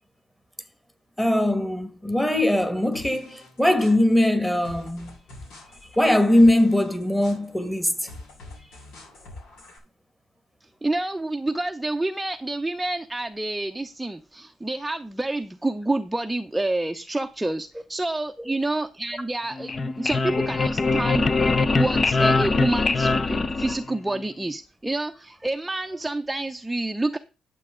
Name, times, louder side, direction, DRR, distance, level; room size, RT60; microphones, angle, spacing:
voice 1, 1.2-5.1 6.0-8.0, left 1 dB, 5° left, 1.8 m, -21 dB
sound 1, 2.9-9.8, left 2 dB, 85° left, 6.7 m, -46 dB
voice 2, 10.6-27.2, right 2 dB, 10° right, 0.7 m, -28 dB
sound 2, 19.5-24.2, left 3 dB, 35° left, 0.8 m, -22 dB
12.0 x 7.6 x 3.8 m
cardioid pair, 90°, 0 cm